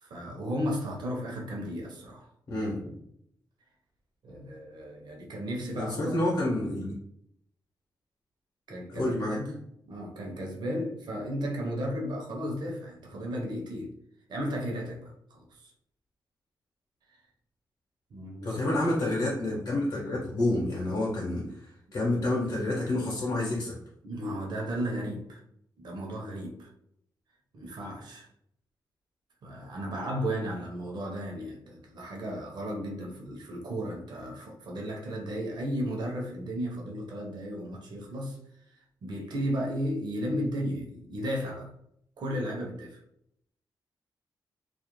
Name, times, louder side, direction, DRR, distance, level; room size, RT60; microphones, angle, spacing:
voice 1, 0.0-2.3 4.2-6.2 8.7-9.6 9.8-13.9 14.3-15.7 17.1-17.2 18.1-18.8 24.0-25.4 25.8-26.7 27.5-28.3 29.4-38.4 38.7-41.7 42.2-43.0, equal, 65° right, 0.6 m, -34 dB
voice 2, 2.5-2.9 5.8-6.9 8.9-9.4 18.4-23.8, left 1 dB, 55° left, 0.7 m, -29 dB
2.4 x 2.0 x 3.0 m
wide cardioid pair, 130°, 8 cm